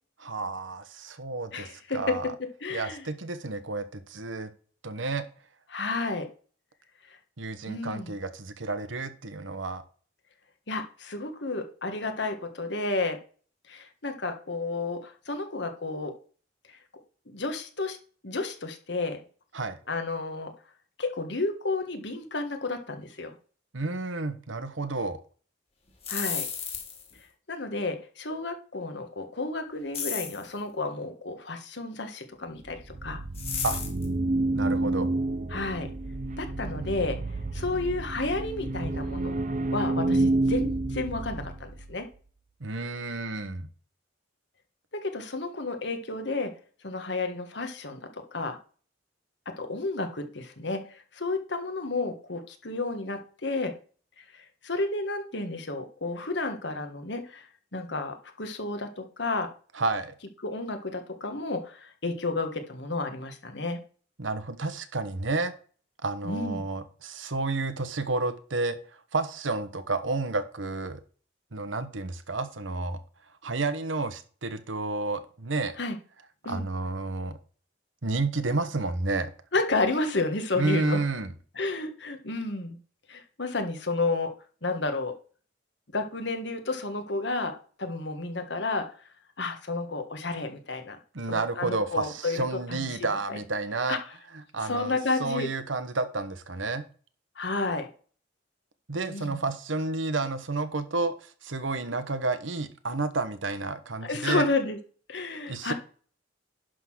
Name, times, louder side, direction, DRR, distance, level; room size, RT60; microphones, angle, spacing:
voice 1, 0.2-1.7 1.9-2.2 2.7-4.5 4.8-5.2 7.4-9.8 19.5-19.8 23.7-25.2 33.6-33.8 34.5-35.1 42.6-43.7 59.7-60.1 64.2-65.5 66.0-68.8 69.1-71.0 71.5-73.0 73.4-75.8 76.5-77.4 78.0-79.3 80.5-81.3 91.1-94.0 94.5-94.9 95.2-96.8 98.9-104.5 105.5-105.7, right 3 dB, 90° right, 10 dB, 1.2 m, -30 dB
voice 2, 1.5-3.1 5.7-6.3 7.1-7.2 7.7-8.1 10.7-13.2 13.7-16.2 16.7-16.8 17.3-18.0 18.2-19.2 19.9-20.5 21.0-23.3 26.1-26.5 27.5-33.2 35.5-35.9 36.4-37.2 37.5-39.4 39.7-42.1 44.9-46.5 46.8-48.6 49.4-53.8 54.2-57.4 57.7-59.5 60.4-63.8 66.2-66.6 75.8-76.0 76.4-76.6 79.5-81.0 81.5-82.8 83.1-84.3 84.6-85.2 85.9-88.9 89.4-91.0 91.3-93.4 93.9-94.0 94.6-95.5 97.3-97.9 99.1-99.4 104.0-104.8 105.1-105.7, left 3 dB, 65° left, 6 dB, 1.6 m, -31 dB
sound 1, 25.9-27.1 29.9-30.5 33.3-34.0, left 7 dB, 30° left, 2.5 m, -33 dB
sound 2, 32.6-42.0, right 2 dB, 40° right, 0.6 m, -29 dB
11.0 x 3.9 x 6.2 m, 0.41 s
head